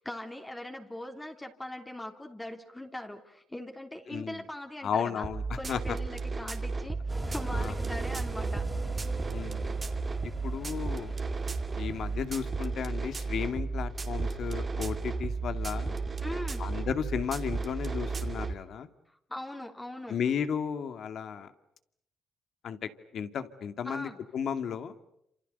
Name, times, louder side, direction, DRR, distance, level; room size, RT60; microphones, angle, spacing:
voice 1, 0.0-5.3 5.6-8.7 16.2-16.6 19.1-20.2 23.8-24.2, left 1 dB, 10° left, 4 dB, 3.1 m, -41 dB
voice 2, 4.1-4.4 4.8-5.4 5.7-6.0 7.5-7.7 9.3-9.7 10.4-11.1 11.8-16.0 16.6-18.9 20.1-21.5 22.6-22.8 23.1-24.9, left 7 dB, 65° left, 9 dB, 2.3 m, -34 dB
sound 1, 5.2-18.6, right 4 dB, 35° right, 2.5 m, -33 dB
sound 2, 7.1-12.2, right 2 dB, 15° right, 4.0 m, -40 dB
29.0 x 27.5 x 6.8 m, 0.76 s
cardioid pair, 90°, 0 cm